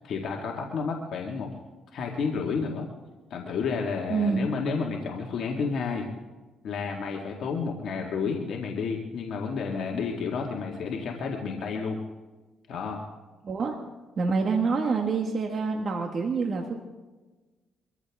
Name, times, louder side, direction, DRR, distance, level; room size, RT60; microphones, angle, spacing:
voice 1, 0.0-1.5 1.9-2.9 3.3-6.1 6.6-12.0 12.7-13.0, left 5 dB, 70° left, 0 dB, 2.0 m, -31 dB
voice 2, 4.1-4.5 13.4-13.7 14.2-16.7, right 4 dB, 50° right, 2 dB, 1.8 m, -26 dB
24.0 x 15.0 x 3.7 m, 1.2 s
cardioid pair, 90°, 0 cm